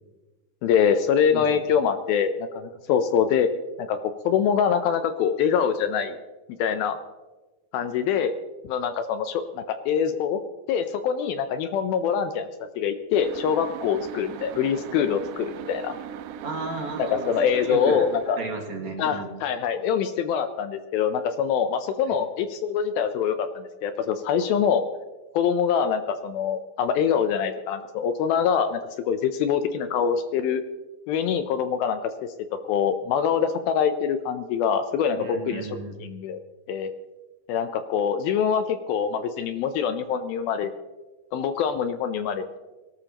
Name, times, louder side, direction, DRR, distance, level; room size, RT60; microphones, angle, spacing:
voice 1, 0.6-3.5 3.8-6.1 6.6-7.0 7.7-8.3 8.6-10.4 10.7-16.0 17.0-18.4 19.0-24.8 25.3-28.8 29.1-30.6 31.1-32.3 32.7-36.4 36.7-36.9 37.5-40.7 41.3-42.6, left 7 dB, 80° left, 9 dB, 2.3 m, -24 dB
sound 1, 13.2-18.5, right 9 dB, 85° right, 2.7 m, -39 dB
voice 2, 16.4-18.1 18.4-19.3 22.1-22.2 35.2-36.0, right 3 dB, 50° right, 1 dB, 2.6 m, -33 dB
22.0 x 18.0 x 2.9 m, 1.2 s
omnidirectional pair, 4.6 m